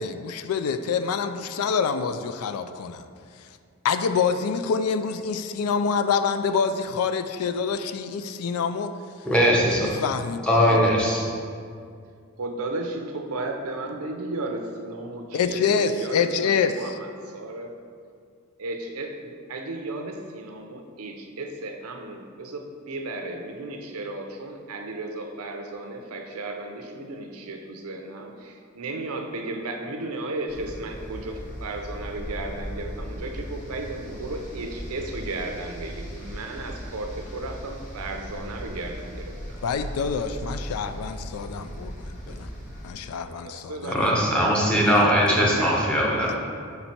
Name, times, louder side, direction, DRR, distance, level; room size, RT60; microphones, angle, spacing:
voice 1, 0.0-3.0 3.4-3.5 3.8-8.9 9.7-10.9 15.3-17.0 39.6-42.5 42.8-44.2 44.9-45.1 45.4-45.6 46.3-46.4, left 6 dB, 90° left, 10 dB, 0.3 m, -26 dB
voice 2, 9.2-9.9 10.4-11.3 42.3-42.4 43.9-46.3, equal, 5° left, -4 dB, 0.7 m, -20 dB
voice 3, 12.4-17.7 18.6-39.6 43.3-44.5 45.0-46.3, right 2 dB, 90° right, 4 dB, 0.6 m, -34 dB
sound 1, 30.5-42.9, equal, 35° left, 1.4 m, -38 dB
5.3 x 4.1 x 4.4 m, 2.2 s
head